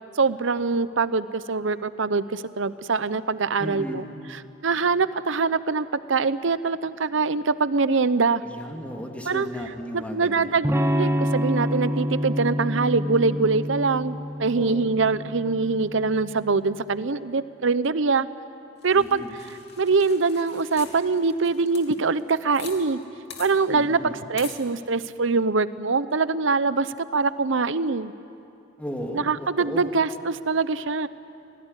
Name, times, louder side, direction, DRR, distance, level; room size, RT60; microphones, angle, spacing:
voice 1, 0.2-4.0 4.6-8.4 9.3-9.5 9.9-18.3 18.8-19.2 19.8-23.0 23.4-28.1 29.1-31.1, right 4 dB, 70° right, 15 dB, 0.8 m, -23 dB
voice 2, 3.6-4.0 8.4-10.6 14.5-14.8 18.9-19.3 23.7-24.2 28.8-29.3 29.6-29.9, equal, 5° left, 1 dB, 2.6 m, -35 dB
Electric guitar / Strum, 10.6-16.4, equal, 15° right, 1.0 m, -27 dB
sound 1, 18.8-22.8 23.0-23.1 23.3-23.5 24.4-24.6, left 7 dB, 60° left, 3.0 m, -43 dB
26.5 x 18.0 x 9.9 m, 2.7 s
head